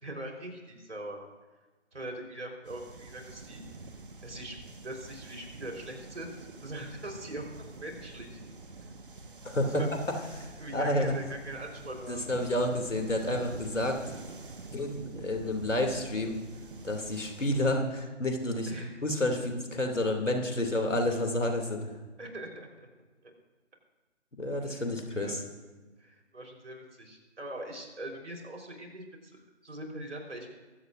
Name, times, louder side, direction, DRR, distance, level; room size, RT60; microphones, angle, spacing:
voice 1, 0.0-1.2 1.9-3.6 4.2-4.6 4.8-6.4 6.6-7.5 7.8-8.4 9.7-10.0 10.6-12.2 18.7-19.0 22.2-22.9 23.2-23.3 24.6-24.9 25.2-25.4 26.0-30.5, right 1 dB, 65° right, 1 dB, 4.2 m, -41 dB
sound 1, 2.6-17.6, right 3 dB, 45° right, 1.5 m, -46 dB
voice 2, 9.4-9.8 10.4-10.5 10.7-11.1 12.1-14.0 14.7-16.4 16.8-18.7 19.0-22.0 24.4-25.4, left 1 dB, 75° left, 3 dB, 2.8 m, -30 dB
23.5 x 15.5 x 2.6 m, 1.3 s
figure-of-eight pair, 145°, 37 cm